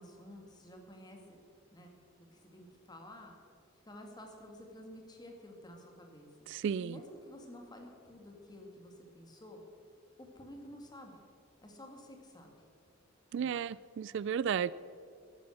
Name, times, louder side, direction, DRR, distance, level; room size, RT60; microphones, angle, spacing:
voice 1, 0.0-1.4 1.7-1.9 2.3-3.3 3.9-6.3 6.8-9.6 10.2-11.1 11.6-12.5, left 1 dB, 20° left, 2 dB, 2.1 m, -51 dB
voice 2, 6.5-7.0 13.3-14.7, right 7 dB, 65° right, 20 dB, 0.3 m, -33 dB
15.0 x 11.0 x 6.5 m, 2.3 s
head